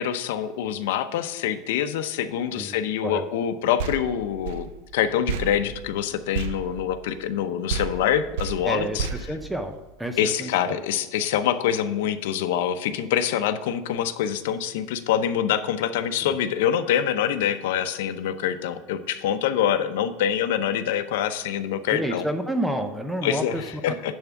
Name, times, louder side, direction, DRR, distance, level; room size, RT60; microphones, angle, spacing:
voice 1, 0.0-9.1 10.2-22.2 23.2-24.1, left 9 dB, 90° left, 10 dB, 0.7 m, -25 dB
sound 1, 3.8-7.4 7.7-10.2, right 6 dB, 85° right, 0.5 m, -33 dB
voice 2, 8.6-10.8 21.9-24.0, right 1 dB, 5° right, 7 dB, 0.5 m, -30 dB
10.5 x 3.6 x 7.0 m, 1.1 s
cardioid pair, 170°, 0 cm